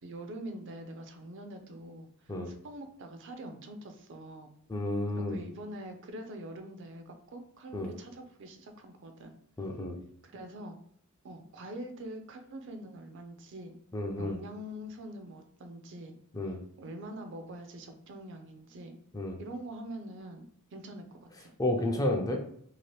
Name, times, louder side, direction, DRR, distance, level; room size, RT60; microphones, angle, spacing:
voice 1, 0.0-4.5 5.1-9.3 10.2-10.8 11.2-13.7 14.2-16.2 16.8-18.9 19.4-20.4 20.7-21.5, right 1 dB, 55° right, 6 dB, 0.5 m, -44 dB
voice 2, 4.7-5.4 7.7-7.9 9.6-10.0 13.9-14.4 16.3-16.6 19.1-19.4 21.6-22.4, left 1 dB, 15° left, 2 dB, 0.4 m, -31 dB
2.8 x 2.5 x 3.1 m, 0.68 s
head